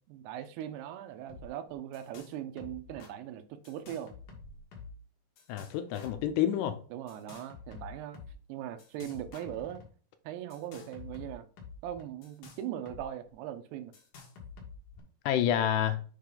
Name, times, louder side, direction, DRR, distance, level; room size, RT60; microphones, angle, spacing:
voice 1, 0.1-4.1 6.9-8.2 8.5-9.8 10.2-11.5 11.8-13.9, right 11 dB, 80° right, 2.5 m, -40 dB
sound 1, 1.3-1.5 1.7-2.3 2.6-3.1 3.6-5.0 5.4-6.3 7.1-8.3 8.8-9.9 10.5-13.0 13.3-13.4 13.9-15.0, left 4 dB, 60° left, 2.4 m, -48 dB
voice 2, 5.5-6.8 15.3-16.0, left 10 dB, 80° left, 2.7 m, -28 dB
7.3 x 4.8 x 3.8 m
omnidirectional pair, 5.3 m